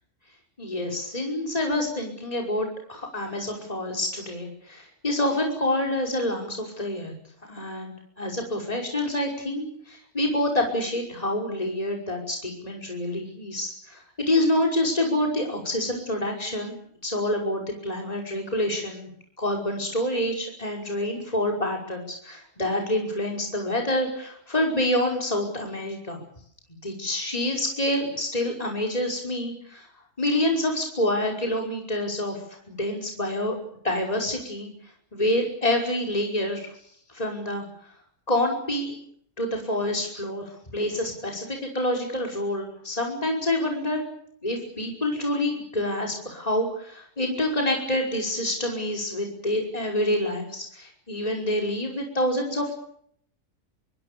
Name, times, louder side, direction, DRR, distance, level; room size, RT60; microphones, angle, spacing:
voice 1, 0.6-7.1 7.5-16.8 17.0-19.1 19.4-26.2 26.8-29.9 30.2-32.4 32.7-33.6 33.8-34.7 35.1-36.6 37.1-37.6 38.3-38.9 39.4-44.0 44.4-52.7, left 1 dB, 25° left, 1 dB, 5.7 m, -27 dB
27.0 x 24.5 x 6.9 m, 0.66 s
omnidirectional pair, 1.6 m